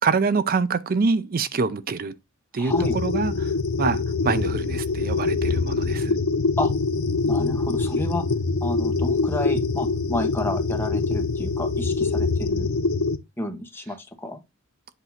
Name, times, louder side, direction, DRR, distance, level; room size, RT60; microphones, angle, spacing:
voice 1, 0.0-2.1 2.5-3.3 3.8-6.2, right 4 dB, 45° right, 0.5 m, -25 dB
voice 2, 2.6-3.0 6.6-6.7 7.2-8.2 8.6-12.7 13.4-14.4, left 1 dB, 10° left, 1.1 m, -31 dB
sound 1, 2.7-13.2, left 3 dB, 80° left, 0.6 m, -24 dB
8.2 x 2.7 x 5.7 m
head